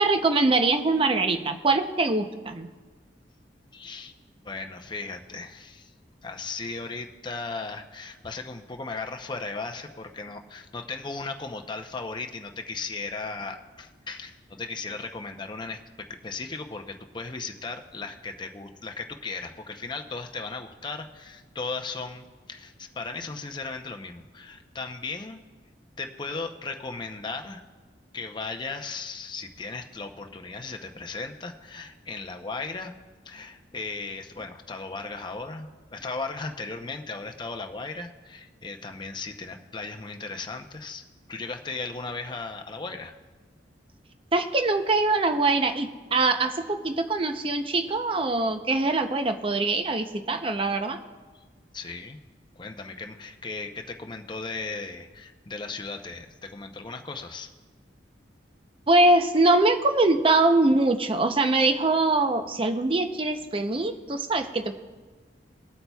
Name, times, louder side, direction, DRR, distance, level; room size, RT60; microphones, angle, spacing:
voice 1, 0.0-2.7 44.3-51.0 58.9-64.8, right 2 dB, 30° right, 7 dB, 0.6 m, -23 dB
voice 2, 3.7-4.1 4.4-5.9 6.2-25.4 26.0-27.6 28.1-32.9 33.2-41.0 41.3-43.2 51.7-52.2 52.6-57.5, left 3 dB, 25° left, 4 dB, 0.7 m, -36 dB
21.5 x 8.4 x 2.3 m, 1.3 s
head